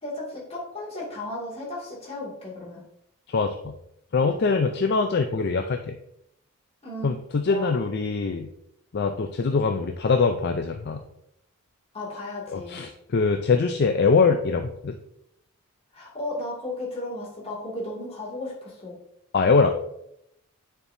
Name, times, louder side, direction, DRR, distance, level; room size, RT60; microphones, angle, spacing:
voice 1, 0.0-2.8 6.8-7.2 7.5-7.8 11.9-12.8 15.9-19.0, left 1 dB, 30° left, -5 dB, 2.2 m, -34 dB
voice 2, 3.3-3.7 4.1-6.0 7.0-8.5 8.9-11.0 12.5-15.0 19.3-19.7, left 4 dB, 50° left, 6 dB, 0.4 m, -23 dB
9.9 x 4.5 x 2.7 m, 0.77 s
head